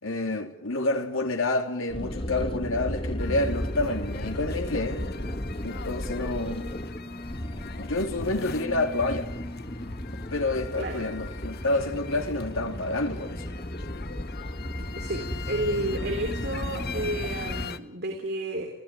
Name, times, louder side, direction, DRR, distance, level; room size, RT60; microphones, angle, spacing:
voice 1, 0.0-6.7 7.8-9.3 10.3-13.4, left 2 dB, 85° left, 3.0 m, -29 dB
sound 1, 1.9-17.7, equal, 25° left, 1.7 m, -34 dB
sound 2, 3.2-17.8, left 5 dB, 55° left, 1.2 m, -41 dB
voice 2, 10.7-11.1 14.9-18.7, right 1 dB, 55° right, 3.6 m, -31 dB
29.5 x 16.5 x 9.8 m
head